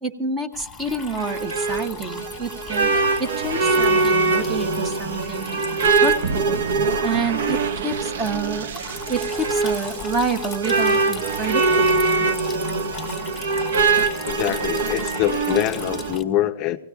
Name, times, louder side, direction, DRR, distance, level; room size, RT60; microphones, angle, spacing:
voice 1, 0.0-2.9 3.2-6.6 7.0-8.7 9.1-12.0, right 3 dB, 10° right, 9 dB, 0.7 m, -28 dB
Water tap faucet / Trickle dribble, 0.5-16.2, left 6 dB, 5° left, 1.3 m, -39 dB
sound 1, 0.9-16.2, right 4 dB, 75° right, 1.2 m, -23 dB
sound 2, 6.2-12.3, right 6 dB, 60° right, 0.6 m, -33 dB
voice 2, 14.3-16.8, left 13 dB, 30° left, 6 dB, 0.5 m, -24 dB
25.5 x 17.0 x 2.3 m, 0.76 s
hypercardioid pair, 160°, 0 cm